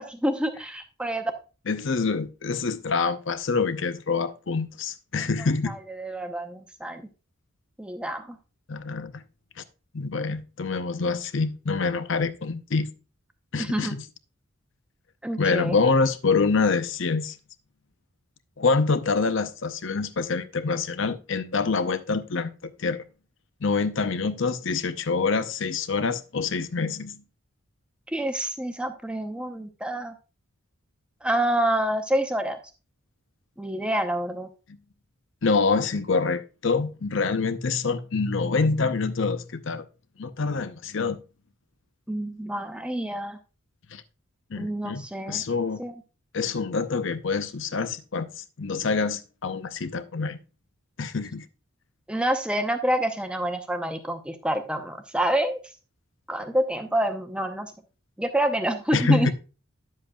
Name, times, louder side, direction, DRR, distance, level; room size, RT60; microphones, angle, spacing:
voice 1, 0.1-1.3 5.7-7.1 7.8-8.4 13.6-13.9 15.2-15.8 28.1-30.1 31.2-32.6 33.6-34.5 42.1-43.4 44.6-45.4 45.8-45.9 52.1-55.6 56.3-57.7 58.2-59.3, right 1 dB, 5° right, 0.7 m, -27 dB
voice 2, 1.7-5.7 8.7-9.2 9.9-12.9 13.5-14.0 15.4-17.4 18.6-22.5 22.8-23.0 23.6-27.2 35.4-39.8 40.2-41.2 43.9-44.0 44.5-45.8 46.3-50.4 51.0-51.5 58.9-59.3, left 4 dB, 60° left, 0.6 m, -26 dB
10.0 x 7.5 x 2.3 m
head